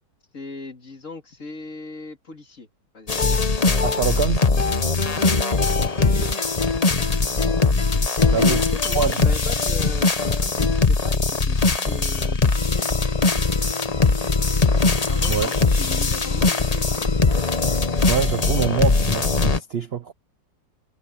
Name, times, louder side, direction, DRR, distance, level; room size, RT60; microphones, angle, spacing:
voice 1, 0.3-2.7 2.9-3.7 5.1-5.3 8.2-12.9 15.1-17.4, left 3 dB, 45° left, 2.7 m, -39 dB
sound 1, 3.1-19.6, left 4 dB, 25° left, 0.9 m, -20 dB
voice 2, 3.8-4.5 6.0-6.4 8.3-8.6 8.9-9.1 15.3-15.5 18.1-20.1, right 7 dB, 65° right, 0.6 m, -25 dB
omnidirectional pair, 2.0 m